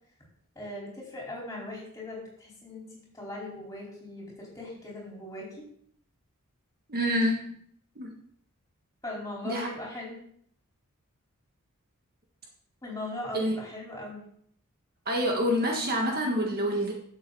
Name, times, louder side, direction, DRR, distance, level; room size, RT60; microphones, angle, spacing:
voice 1, 0.5-5.6 9.0-10.2 12.8-14.2, left 1 dB, 15° left, -4 dB, 4.6 m, -39 dB
voice 2, 6.9-7.5 8.0-8.2 9.4-9.7 13.3-13.6 15.0-16.9, equal, 45° right, 1 dB, 1.6 m, -27 dB
11.5 x 7.6 x 4.2 m, 0.63 s
head